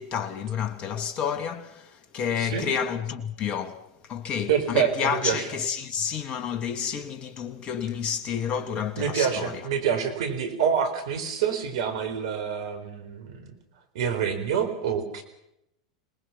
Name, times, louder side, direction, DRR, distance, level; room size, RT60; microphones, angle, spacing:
voice 1, 0.0-9.7, left 7 dB, 35° left, 2.1 m, -30 dB
voice 2, 4.5-5.5 9.0-13.5 13.9-15.2, right 7 dB, 65° right, 4.3 m, -27 dB
27.0 x 19.5 x 5.9 m
hypercardioid pair, 95°, 3 cm